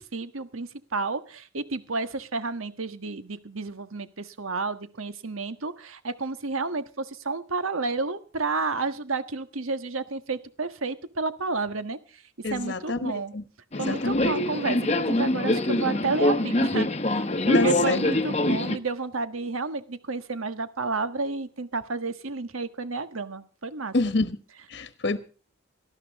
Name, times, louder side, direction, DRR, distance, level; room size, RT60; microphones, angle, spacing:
voice 1, 0.0-13.3 13.8-23.9, right 3 dB, 85° right, 1.5 m, -31 dB
voice 2, 12.4-13.4 13.9-14.3 17.5-18.0 23.9-24.4 24.7-25.2, left 3 dB, 55° left, 1.2 m, -27 dB
Subway metro underground, 13.7-18.8, left 1 dB, 30° left, 0.9 m, -24 dB
19.0 x 13.5 x 3.6 m
head